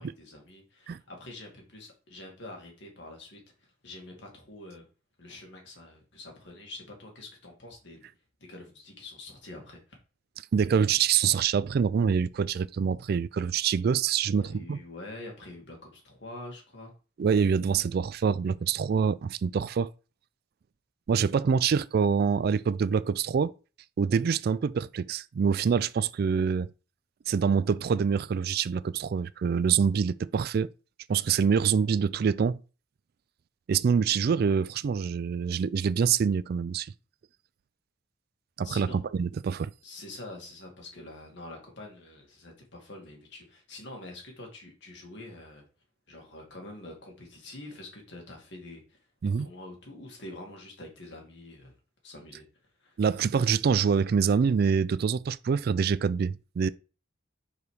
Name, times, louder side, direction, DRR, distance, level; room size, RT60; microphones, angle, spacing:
voice 1, 0.0-3.4 3.8-4.8 5.2-8.1 8.5-10.0 14.3-16.9 38.6-39.0 39.8-45.7 46.1-49.0 49.4-51.7 52.0-52.5 52.8-53.0, left 2 dB, 65° left, 2.4 m, -45 dB
voice 2, 10.5-14.8 17.2-19.9 21.1-23.5 24.0-26.7 27.3-30.7 31.1-32.6 33.7-36.9 38.6-39.7 49.2-49.5 53.0-56.7, right 6 dB, 55° right, 0.3 m, -25 dB
5.3 x 4.8 x 4.9 m
head